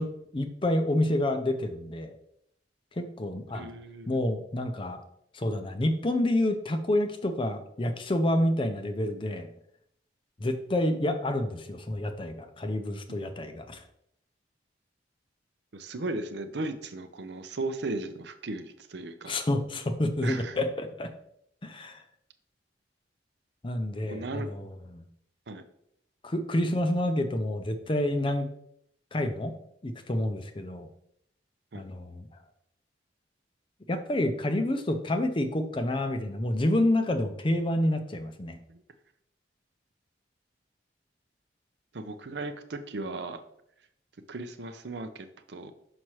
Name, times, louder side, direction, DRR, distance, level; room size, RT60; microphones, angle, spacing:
voice 1, 0.0-2.1 3.0-3.7 4.1-5.0 5.3-9.5 10.4-13.8 19.3-21.1 21.6-22.0 23.6-25.1 26.2-28.5 29.1-29.6 29.8-30.9 31.7-32.3 33.9-38.6, left 1 dB, 30° left, 8 dB, 0.5 m, -28 dB
voice 2, 3.5-4.2 15.7-19.4 20.2-20.6 24.0-24.5 25.5-25.6 31.7-31.9 38.7-38.8 41.9-43.4 44.3-45.7, right 2 dB, 65° right, 9 dB, 0.6 m, -36 dB
6.1 x 5.5 x 3.1 m, 0.74 s
head